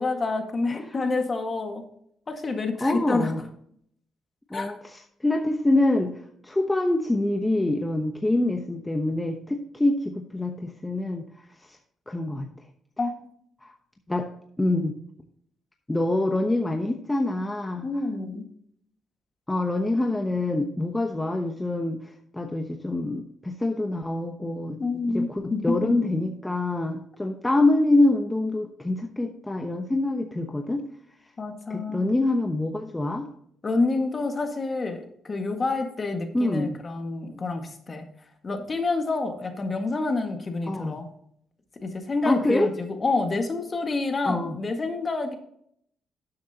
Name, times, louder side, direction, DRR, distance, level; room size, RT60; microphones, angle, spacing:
voice 1, 0.0-1.8 2.3-3.3 4.5-4.7 13.0-13.1 17.8-18.4 24.8-25.9 31.4-32.0 33.6-38.0 38.4-41.1 41.8-45.3, left 3 dB, 35° left, 5 dB, 1.7 m, -28 dB
voice 2, 2.8-3.4 4.5-6.2 6.4-11.2 11.7-11.8 12.1-12.5 13.6-13.7 14.1-14.3 14.6-15.0 15.9-17.9 19.5-24.8 25.1-30.9 31.7-33.3 36.3-36.8 40.7-41.0 42.3-42.7 44.3-44.5, left 2 dB, 10° left, 3 dB, 0.9 m, -25 dB
12.5 x 7.7 x 2.9 m, 0.67 s
cardioid pair, 90°, 0 cm